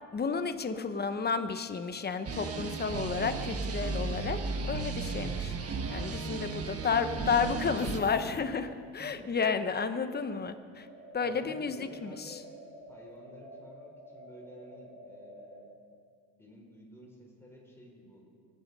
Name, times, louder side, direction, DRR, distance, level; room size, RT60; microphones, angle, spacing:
voice 1, 0.1-4.4 4.7-5.6 5.9-10.9 11.1-12.4, left 5 dB, 25° left, 9 dB, 1.0 m, -32 dB
sound 1, 2.2-8.0, right 4 dB, 40° right, 1.3 m, -35 dB
voice 2, 6.4-7.7 9.0-9.8 11.2-12.5 12.9-15.7 16.3-18.3, equal, 5° left, -2 dB, 4.6 m, -53 dB
sound 2, 7.8-9.0, left 7 dB, 45° left, 1.2 m, -46 dB
sound 3, 10.6-15.7, equal, 80° right, 5.3 m, -50 dB
24.5 x 9.4 x 5.4 m, 2.1 s
cardioid pair, 110°, 37 cm